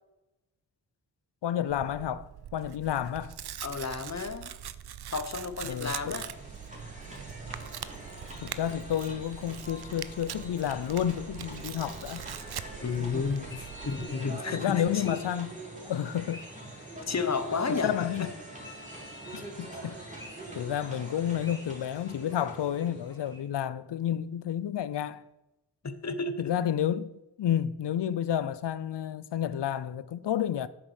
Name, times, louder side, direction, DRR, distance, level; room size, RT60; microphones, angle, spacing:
voice 1, 1.4-3.4 5.6-6.2 8.4-12.2 13.0-13.5 14.1-15.5 15.9-16.4 17.7-18.3 19.3-20.0 20.5-25.2 26.4-27.1 27.4-30.7, left 10 dB, 75° left, 0.6 m, -31 dB
Tearing, 1.7-14.1, right 10 dB, 65° right, 0.5 m, -43 dB
voice 2, 3.6-4.5 5.1-6.3 12.8-15.2 17.1-17.9 18.2-18.3 20.6-20.7 25.8-26.6, left 4 dB, 40° left, 1.0 m, -32 dB
sound 1, 5.5-23.4, right 1 dB, 20° right, 3.1 m, -44 dB
sound 2, 13.5-18.3 18.6-20.7 20.9-23.4, left 1 dB, 10° left, 2.0 m, -52 dB
8.4 x 6.2 x 6.4 m
wide cardioid pair, 65°, 41 cm